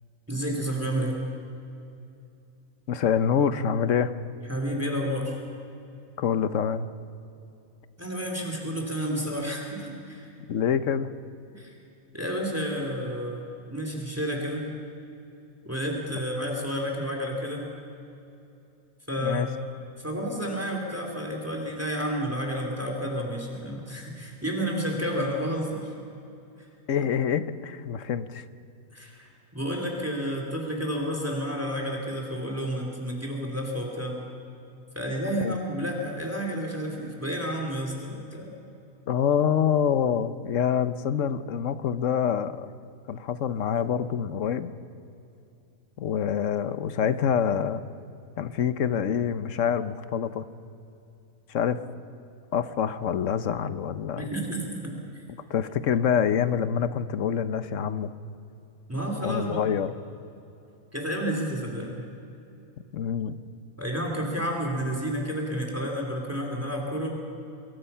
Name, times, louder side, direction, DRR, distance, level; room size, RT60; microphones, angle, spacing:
voice 1, 0.3-1.1 4.5-5.4 8.0-10.3 11.5-11.7 12.1-13.4 13.7-14.7 15.6-17.7 19.1-19.5 20.0-25.9 28.9-34.2 34.9-38.5 54.1-55.0 58.9-59.6 60.9-62.0 63.8-67.1, equal, 10° right, 1 dB, 3.2 m, -30 dB
voice 2, 2.9-4.1 6.2-6.9 10.5-11.1 19.2-19.5 26.9-28.4 35.4-35.6 39.1-42.7 43.1-44.7 46.0-47.9 48.4-50.4 51.5-51.8 52.5-54.3 55.5-58.1 59.2-59.9 62.9-63.3, left 8 dB, 65° left, 13 dB, 1.2 m, -26 dB
26.0 x 22.0 x 5.7 m, 2.7 s
omnidirectional pair, 1.5 m